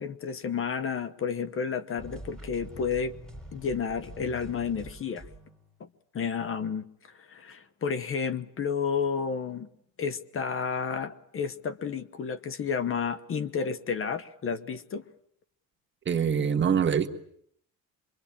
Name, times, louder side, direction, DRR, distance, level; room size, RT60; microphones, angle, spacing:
voice 1, 0.0-3.1 3.5-5.2 5.8-5.9 6.1-9.7 10.0-15.0, left 6 dB, 35° left, 15 dB, 1.1 m, -31 dB
sound 1, 2.0-5.7, equal, ahead, 4.1 m, -45 dB
voice 2, 16.0-17.2, right 7 dB, 30° right, 5 dB, 1.6 m, -24 dB
25.0 x 23.5 x 8.8 m, 0.69 s
cardioid pair, 130°, 35 cm